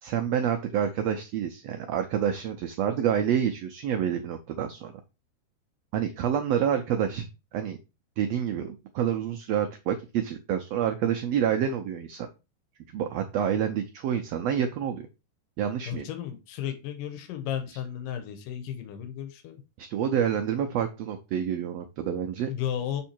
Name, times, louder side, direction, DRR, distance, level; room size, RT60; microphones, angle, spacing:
voice 1, 0.0-4.9 5.9-7.3 7.5-7.8 8.2-12.3 12.9-15.1 15.6-16.1 19.8-22.5, right 9 dB, 80° right, 6 dB, 1.4 m, -28 dB
voice 2, 15.9-19.6 22.5-23.0, left 9 dB, 85° left, 7 dB, 2.6 m, -34 dB
7.1 x 3.6 x 4.4 m, 0.28 s
omnidirectional pair, 3.7 m